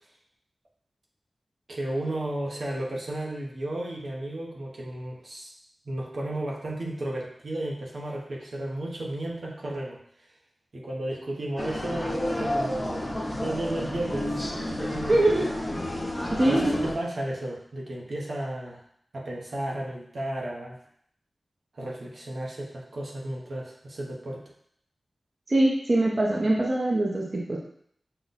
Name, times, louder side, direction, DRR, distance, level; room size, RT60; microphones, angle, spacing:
voice 1, 1.7-5.5 5.8-10.0 10.7-13.1 13.4-15.5 16.4-18.8 19.1-20.8 21.7-24.4, right 1 dB, 70° right, -2 dB, 1.0 m, -33 dB
sound 1, 11.6-16.9, left 1 dB, 30° left, 0.9 m, -31 dB
voice 2, 15.1-15.5 16.3-16.8 25.5-27.6, right 1 dB, 45° right, -3 dB, 0.8 m, -23 dB
5.8 x 2.2 x 4.1 m, 0.66 s
wide cardioid pair, 60°, 0 cm